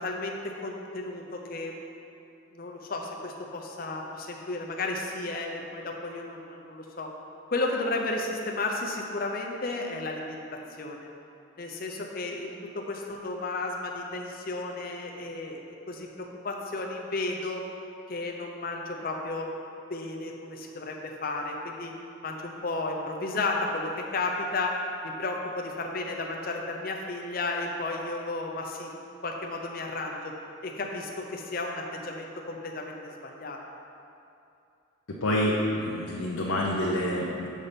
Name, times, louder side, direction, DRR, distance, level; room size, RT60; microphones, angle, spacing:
voice 1, 0.0-1.8 2.5-7.1 7.5-10.4 10.8-11.1 11.6-17.7 18.1-19.5 19.9-21.9 22.2-28.9 29.2-30.3 30.6-33.6, left 2 dB, 45° left, 0 dB, 0.6 m, -33 dB
voice 2, 35.1-37.5, left 1 dB, 90° left, -4 dB, 0.7 m, -27 dB
7.2 x 4.1 x 5.1 m, 2.7 s
head